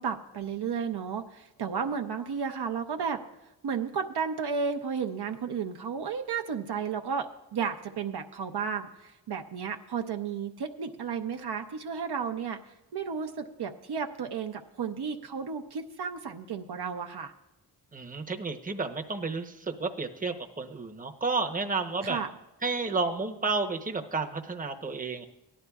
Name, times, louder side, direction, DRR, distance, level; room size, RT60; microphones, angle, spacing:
voice 1, 0.0-3.2 3.6-12.6 12.9-17.3 22.0-22.3, right 6 dB, 65° right, 4 dB, 0.7 m, -33 dB
voice 2, 17.9-22.2 22.6-25.2, right 4 dB, 20° right, 4 dB, 0.8 m, -31 dB
17.5 x 11.0 x 2.3 m, 0.93 s
cardioid pair, 65°, 43 cm